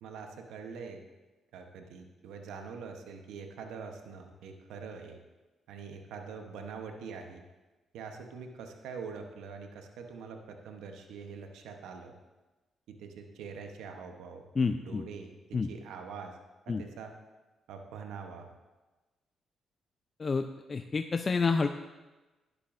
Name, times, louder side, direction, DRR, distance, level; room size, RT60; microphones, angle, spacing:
voice 1, 0.0-1.0 1.5-5.2 5.7-7.4 7.9-12.1 12.9-14.4 14.8-16.4 16.7-17.1 17.7-18.5, right 5 dB, 85° right, 4 dB, 0.9 m, -44 dB
voice 2, 14.6-15.0 15.5-15.7 16.7-16.8 20.2-21.7, left 4 dB, 40° left, 7 dB, 0.4 m, -29 dB
12.0 x 10.5 x 2.6 m, 1.2 s
supercardioid pair, 65°, 0 cm